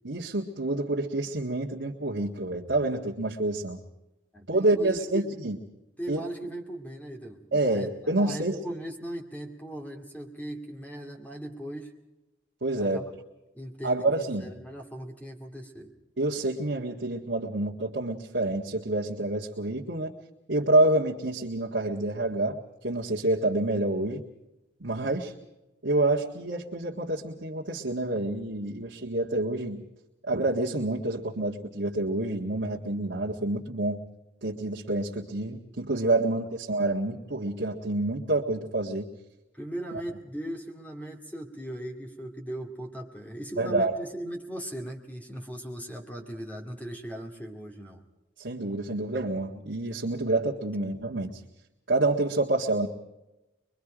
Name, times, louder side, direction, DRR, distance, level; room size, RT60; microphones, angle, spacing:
voice 1, 0.1-3.8 4.5-5.6 6.1-6.2 7.5-8.6 12.6-13.0 13.8-14.5 16.2-20.1 20.5-24.2 24.8-25.3 25.8-29.9 30.2-34.0 34.4-39.1 43.6-44.0 48.4-51.4 51.9-52.9, right 2 dB, 70° right, -4 dB, 1.7 m, -28 dB
voice 2, 4.3-5.4 6.0-7.4 7.7-11.9 12.8-13.0 13.5-15.9 39.5-48.0, right 1 dB, 10° left, 2 dB, 2.2 m, -38 dB
23.5 x 23.0 x 5.0 m, 0.99 s
head